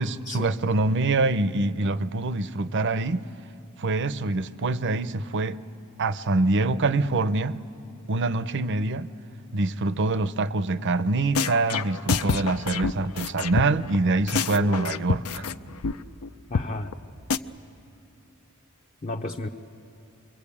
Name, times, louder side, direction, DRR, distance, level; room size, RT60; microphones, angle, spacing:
voice 1, 0.0-3.3 3.8-5.6 6.0-7.6 8.1-9.1 9.5-15.5, right 2 dB, 55° right, 0.6 m, -25 dB
sound 1, 11.0-11.1 11.3-14.0 14.3-15.5 15.8-15.9 16.2-16.3 16.5-16.7 16.9-17.0 17.3-17.4, left 5 dB, 75° left, 0.6 m, -26 dB
voice 2, 14.5-15.0 16.5-16.9 19.0-19.5, left 2 dB, 35° left, 0.7 m, -33 dB
26.0 x 23.0 x 8.6 m
head